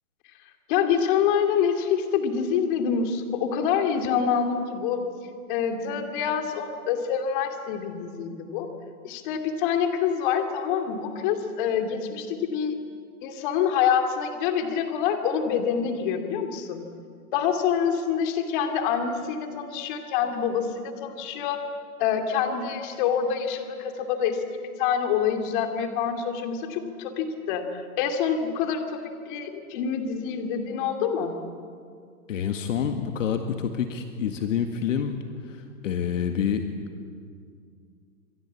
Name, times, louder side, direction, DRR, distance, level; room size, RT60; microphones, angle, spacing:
voice 1, 0.7-5.0 5.5-8.7 9.0-12.8 13.2-16.8 17.3-21.6 22.0-24.4 24.8-31.3, left 7 dB, 35° left, 5 dB, 2.7 m, -26 dB
voice 2, 32.3-35.2 35.5-36.7, left 8 dB, 55° left, 6 dB, 2.0 m, -27 dB
27.5 x 21.5 x 8.6 m, 2.3 s
hypercardioid pair, 155°, 45 cm